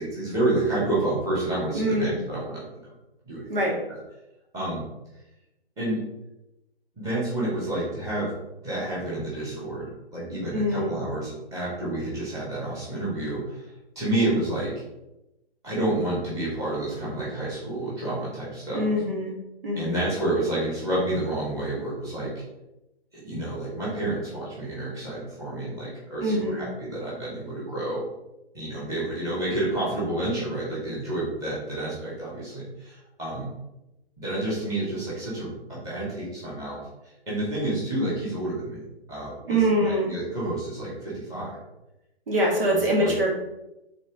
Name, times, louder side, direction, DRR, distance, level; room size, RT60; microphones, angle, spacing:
voice 1, 0.0-2.7 3.2-3.5 3.9-4.0 4.5-4.9 5.8-6.0 7.0-8.3 8.6-14.7 15.6-18.9 19.8-22.3 23.1-28.0 28.5-33.5 34.2-36.8 37.3-41.5 42.7-43.1, right 1 dB, 10° right, -8 dB, 2.2 m, -29 dB
voice 2, 1.7-2.2 3.5-3.8 10.5-10.9 18.7-19.3 19.6-20.0 26.2-26.6 39.4-40.1 42.3-43.3, equal, 60° right, -3 dB, 2.3 m, -24 dB
5.2 x 4.2 x 4.9 m, 0.94 s
hypercardioid pair, 145°, 31 cm